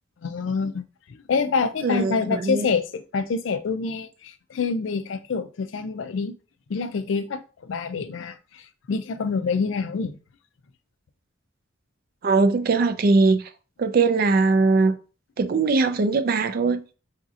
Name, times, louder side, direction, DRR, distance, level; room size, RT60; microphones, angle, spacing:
voice 1, 0.2-0.8 1.3-6.3 6.7-8.6 8.9-10.2, left 5 dB, 75° left, 0.4 m, -26 dB
voice 2, 1.8-2.7 12.2-13.4 13.8-15.0 15.4-16.8, right 3 dB, 50° right, 0.4 m, -20 dB
4.9 x 2.7 x 2.4 m
head